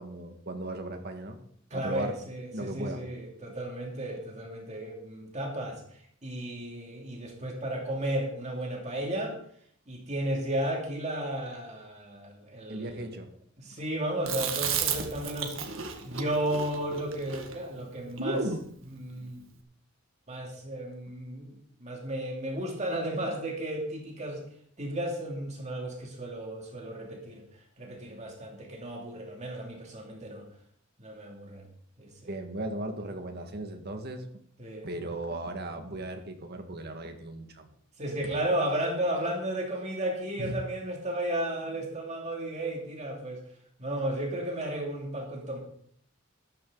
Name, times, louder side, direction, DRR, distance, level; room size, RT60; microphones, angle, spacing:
voice 1, 0.0-1.4 1.7-2.2 2.5-3.0 12.7-13.3 32.3-34.2 34.8-37.7 40.4-40.5, right 2 dB, 55° right, 5 dB, 1.9 m, -37 dB
voice 2, 1.7-5.8 6.2-9.3 9.9-13.1 13.6-15.5 16.0-19.5 20.3-24.4 24.8-27.4 27.8-30.5 31.0-31.7 32.0-32.3 34.6-34.9 38.0-43.4 43.8-45.6, right 1 dB, 35° right, 0 dB, 2.8 m, -34 dB
Chewing mastication, 14.3-18.7, right 6 dB, 70° right, 1.8 m, -33 dB
13.5 x 12.5 x 4.0 m, 0.62 s
head